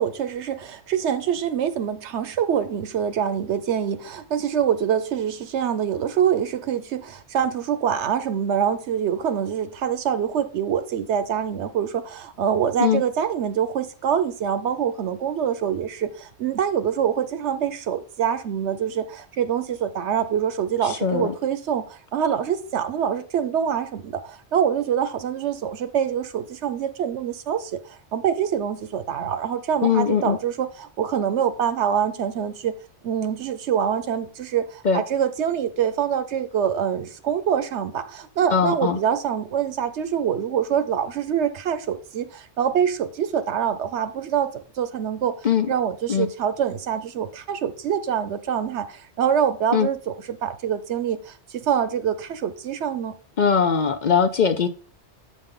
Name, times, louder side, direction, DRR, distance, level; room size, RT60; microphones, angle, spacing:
voice 1, 0.0-32.7 33.0-45.3 45.7-53.1, right 8 dB, 80° right, 1.0 m, -25 dB
voice 2, 20.8-21.3 29.8-30.4 34.8-35.0 38.5-39.0 45.4-45.7 46.1-46.3 49.7-49.9 53.4-54.7, left 7 dB, 50° left, 0.6 m, -20 dB
7.8 x 5.2 x 3.8 m
omnidirectional pair, 1.1 m